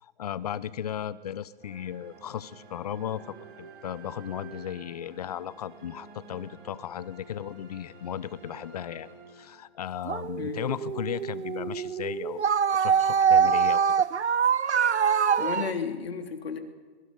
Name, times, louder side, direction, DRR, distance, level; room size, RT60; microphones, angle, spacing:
voice 1, 0.0-12.5 12.8-13.8, left 10 dB, 35° left, 18 dB, 0.8 m, -36 dB
sound 1, 1.6-10.0, right 4 dB, 45° right, 4.8 m, -50 dB
sound 2, 10.0-15.7, right 7 dB, 85° right, 0.9 m, -24 dB
voice 2, 15.4-16.6, left 5 dB, 65° left, 5 dB, 3.2 m, -32 dB
25.5 x 23.5 x 5.4 m, 1.5 s
hypercardioid pair, 150°, 33 cm